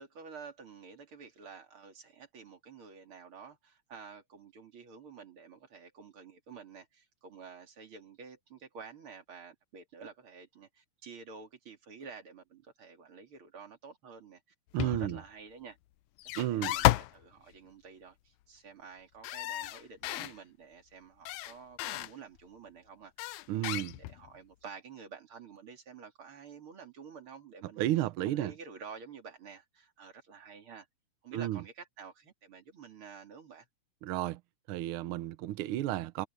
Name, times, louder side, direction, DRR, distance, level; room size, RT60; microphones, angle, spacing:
voice 1, 0.0-14.4 14.7-15.8 16.3-23.3 23.5-27.8 28.2-30.9 31.2-33.7, right 5 dB, 45° right, 3.5 m, -50 dB
voice 2, 14.7-15.2 16.4-16.7 23.5-23.9 27.8-28.5 31.3-31.6 34.0-34.4 34.7-36.3, right 14 dB, 85° right, 1.2 m, -32 dB
sound 1, 14.8-15.2 16.2-17.2 19.2-20.3 21.3-22.1 23.2-24.3, left 16 dB, 90° left, 2.1 m, -32 dB
omnidirectional pair, 3.3 m